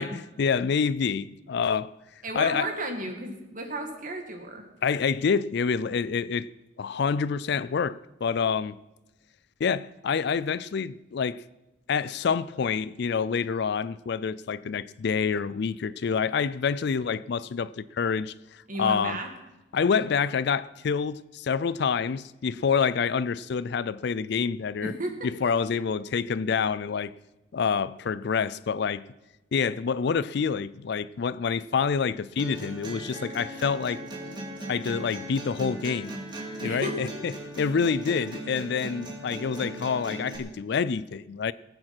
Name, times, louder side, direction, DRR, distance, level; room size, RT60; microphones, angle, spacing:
voice 1, 0.0-1.9 2.3-2.7 4.8-6.5 6.8-8.7 9.6-11.4 11.9-19.2 19.7-24.9 25.2-27.1 27.5-29.0 29.5-34.0 34.7-36.1 36.6-41.5, left 6 dB, 60° left, 0.4 m, -27 dB
voice 2, 2.2-4.6 18.7-19.3 24.8-25.2 36.6-37.1, right 1 dB, 45° right, 2.2 m, -33 dB
sound 1, 32.4-40.4, right 1 dB, 25° right, 2.4 m, -38 dB
19.0 x 8.9 x 6.1 m
head